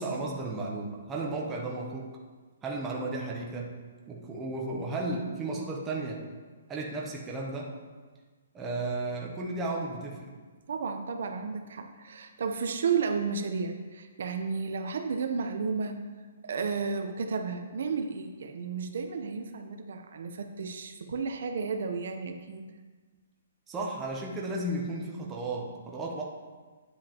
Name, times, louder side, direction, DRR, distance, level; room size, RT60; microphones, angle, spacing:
voice 1, 0.0-2.1 2.6-3.8 4.1-6.2 6.7-7.7 8.5-10.3 23.7-26.2, right 2 dB, 10° right, -2 dB, 0.7 m, -34 dB
voice 2, 10.7-16.0 16.4-22.7, right 5 dB, 55° right, 5 dB, 0.7 m, -32 dB
9.5 x 7.7 x 2.9 m, 1.4 s
hypercardioid pair, 175°, 0 cm